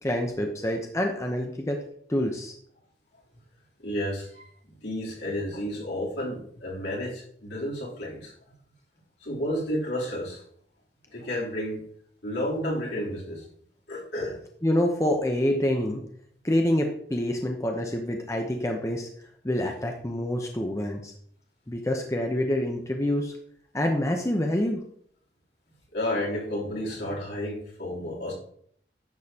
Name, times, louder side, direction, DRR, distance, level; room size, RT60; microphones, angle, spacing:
voice 1, 0.0-1.8 2.1-2.5 14.6-16.0 16.4-19.1 19.4-21.1 21.7-23.3 23.7-24.8, left 1 dB, 15° left, 2 dB, 0.8 m, -26 dB
voice 2, 3.8-4.4 4.8-8.3 9.2-10.4 11.1-11.8 12.2-13.4 13.9-14.4 25.9-28.3, left 1 dB, 75° left, -5 dB, 3.4 m, -31 dB
10.5 x 7.3 x 2.9 m, 0.63 s
head